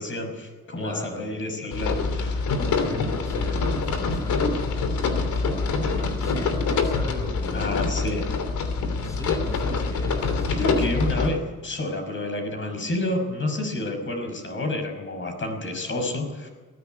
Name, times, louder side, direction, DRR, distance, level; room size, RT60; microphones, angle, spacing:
voice 1, 0.0-2.4 7.5-8.2 10.5-16.5, left 1 dB, 40° left, 4 dB, 5.8 m, -29 dB
voice 2, 0.8-1.3 2.5-7.7 8.7-10.8, equal, 10° left, 3 dB, 4.9 m, -37 dB
sound 1, 1.7-11.3, left 4 dB, 75° left, 3.1 m, -25 dB
19.5 x 15.0 x 9.4 m, 1.3 s
cardioid pair, 90°, 30 cm